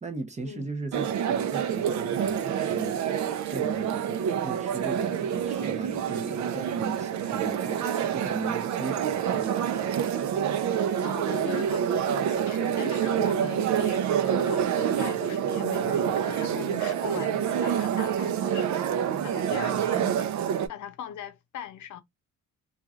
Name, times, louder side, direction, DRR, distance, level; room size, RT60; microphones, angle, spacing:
voice 1, 0.0-3.0 3.5-10.0 19.5-19.9, right 3 dB, 25° right, 0.7 m, -37 dB
sound 1, 0.9-20.7, right 9 dB, 70° right, 0.6 m, -27 dB
voice 2, 11.0-18.8 19.2-20.2 20.7-22.0, left 9 dB, 75° left, 0.6 m, -39 dB
3.0 x 2.4 x 2.4 m
cardioid pair, 90°, 30 cm